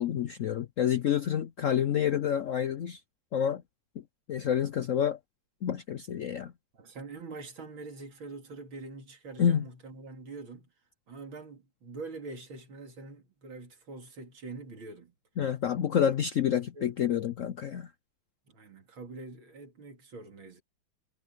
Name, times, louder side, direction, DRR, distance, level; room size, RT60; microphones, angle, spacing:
voice 1, 0.0-3.0 3.3-3.6 4.3-5.2 5.6-6.5 9.4-9.7 15.4-17.9, left 9 dB, 70° left, 0.7 m, -28 dB
voice 2, 6.7-10.7 11.1-15.1 16.5-17.0 18.5-20.6, right 3 dB, 90° right, 3.6 m, -44 dB
omnidirectional pair, 2.1 m